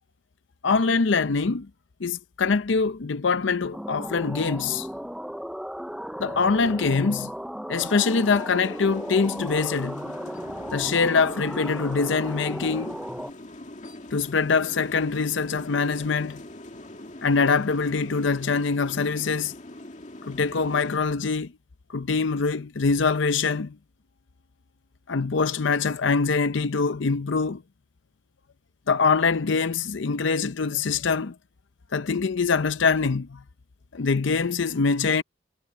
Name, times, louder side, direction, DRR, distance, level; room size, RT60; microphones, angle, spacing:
voice 1, 0.6-1.7 2.0-4.9 6.2-7.3 7.7-10.0 10.7-13.0 14.1-16.4 17.2-19.5 20.3-21.5 21.9-23.8 25.1-27.6 28.9-31.4 31.9-33.4 33.9-35.2, left 4 dB, 70° left, 0.6 m, -24 dB
sound 1, 3.7-13.3, equal, ahead, 0.5 m, -35 dB
sound 2, 7.8-21.0, left 1 dB, 40° left, 2.1 m, -42 dB
head